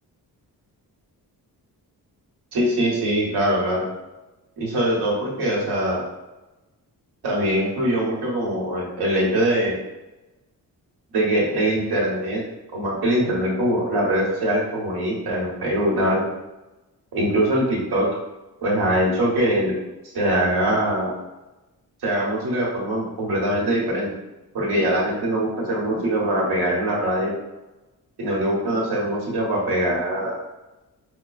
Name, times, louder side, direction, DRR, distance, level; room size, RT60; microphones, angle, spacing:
voice 1, 2.5-3.8 4.6-6.1 7.2-9.8 11.1-12.4 12.7-16.2 17.1-18.1 18.6-19.7 20.1-21.1 22.0-24.1 24.5-27.3 28.2-30.3, right 1 dB, 80° right, -3 dB, 1.2 m, -22 dB
5.2 x 2.2 x 2.4 m, 1.0 s
wide cardioid pair, 135°, 38 cm